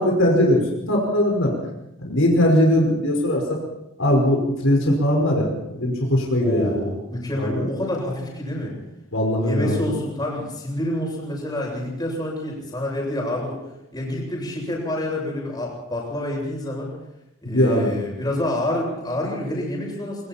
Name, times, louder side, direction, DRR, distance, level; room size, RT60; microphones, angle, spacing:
voice 1, 0.0-1.5 2.0-3.6 4.0-6.7 7.3-7.7 9.1-9.9 17.4-17.9, left 1 dB, 75° left, 0 dB, 5.3 m, -20 dB
voice 2, 6.4-8.7 9.4-13.6 13.9-16.9 17.4-20.3, left 1 dB, 20° left, -2 dB, 7.8 m, -27 dB
25.0 x 24.0 x 4.5 m, 0.87 s
head